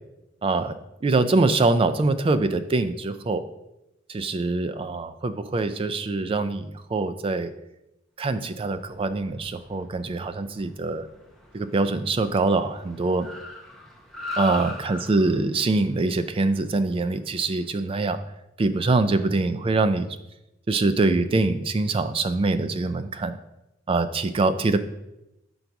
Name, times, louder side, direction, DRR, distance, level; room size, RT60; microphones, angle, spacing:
voice 1, 0.4-0.7 1.0-3.4 4.1-7.5 8.2-11.1 11.5-13.3 14.4-18.2 18.6-20.1 20.7-23.4 23.9-24.8, right 3 dB, 30° right, 11 dB, 0.3 m, -24 dB
Car, 8.4-17.9, left 2 dB, ahead, 0.7 m, -41 dB
5.9 x 3.9 x 4.6 m, 0.92 s
head